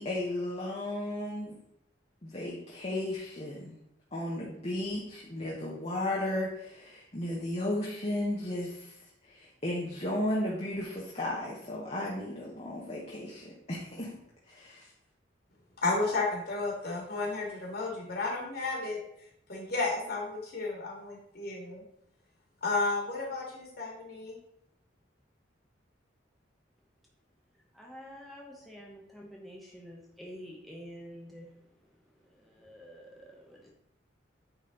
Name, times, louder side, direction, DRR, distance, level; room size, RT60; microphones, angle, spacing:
voice 1, 0.0-1.5 2.2-3.8 4.1-8.9 9.3-14.1 14.5-14.9, left 1 dB, 35° left, -3 dB, 1.1 m, -34 dB
voice 2, 15.8-19.0 19.5-21.8 22.6-24.4, left 3 dB, 55° left, -2 dB, 2.3 m, -32 dB
voice 3, 27.7-31.6 32.2-33.7, equal, ahead, -2 dB, 0.9 m, -48 dB
9.0 x 4.2 x 3.9 m, 0.77 s
head